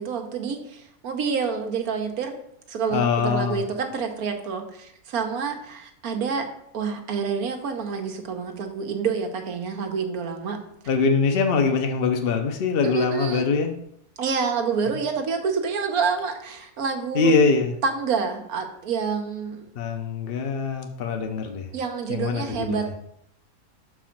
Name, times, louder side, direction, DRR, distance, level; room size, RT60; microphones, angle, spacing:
voice 1, 0.0-2.3 2.7-6.5 6.7-10.6 12.8-13.5 14.2-17.3 17.8-19.7 21.7-22.9, right 5 dB, 90° right, 5 dB, 1.4 m, -28 dB
voice 2, 2.9-3.6 10.9-13.7 17.1-17.7 19.8-21.7 22.1-22.9, left 4 dB, 50° left, 4 dB, 0.8 m, -23 dB
6.2 x 4.6 x 5.8 m, 0.74 s
omnidirectional pair, 1.5 m